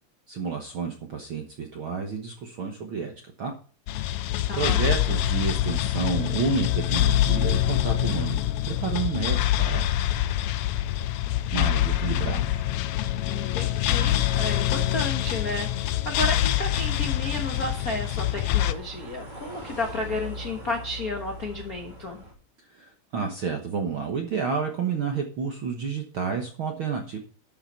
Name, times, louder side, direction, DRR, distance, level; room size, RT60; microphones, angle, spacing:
voice 1, 0.3-3.5 4.6-8.4 8.7-9.9 11.5-12.6 22.6-27.2, right 5 dB, 60° right, 3 dB, 1.4 m, -30 dB
sound 1, 3.9-18.7, left 13 dB, 90° left, 1.6 m, -25 dB
voice 2, 4.5-4.8 13.2-22.2, left 2 dB, 50° left, 2 dB, 1.0 m, -32 dB
sound 2, 16.3-22.3, equal, 15° right, 2.8 m, -44 dB
12.0 x 6.6 x 4.4 m, 0.41 s
omnidirectional pair, 3.9 m